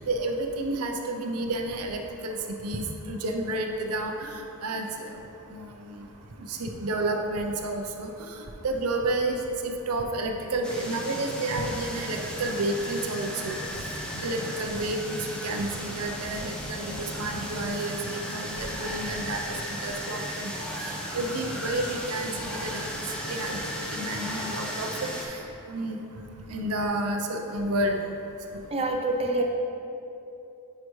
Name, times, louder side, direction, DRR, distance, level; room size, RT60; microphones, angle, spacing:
voice 1, 0.1-5.1 5.5-6.0 6.5-8.1 8.6-13.5 14.2-18.0 18.3-20.5 20.8-22.8 23.3-23.6 23.9-25.1 25.7-26.0 26.5-28.0 28.5-28.7, right 2 dB, 85° right, 3 dB, 0.7 m, -30 dB
sound 1, 10.6-25.2, equal, 5° left, 0.8 m, -35 dB
voice 2, 28.7-29.4, right 2 dB, 25° right, 1 dB, 0.5 m, -26 dB
9.5 x 5.0 x 3.1 m, 2.8 s
head